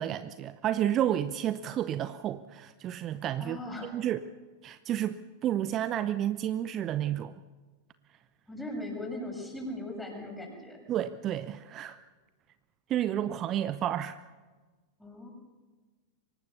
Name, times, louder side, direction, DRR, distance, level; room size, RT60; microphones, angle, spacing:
voice 1, 0.0-4.2 4.6-7.4 10.9-12.0 12.9-14.2, right 11 dB, 30° right, 14 dB, 0.7 m, -31 dB
voice 2, 3.4-4.1 8.5-10.9 15.0-15.3, left 1 dB, 5° left, 1 dB, 7.4 m, -39 dB
24.5 x 19.0 x 6.9 m, 1.4 s
figure-of-eight pair, 90°, 0 cm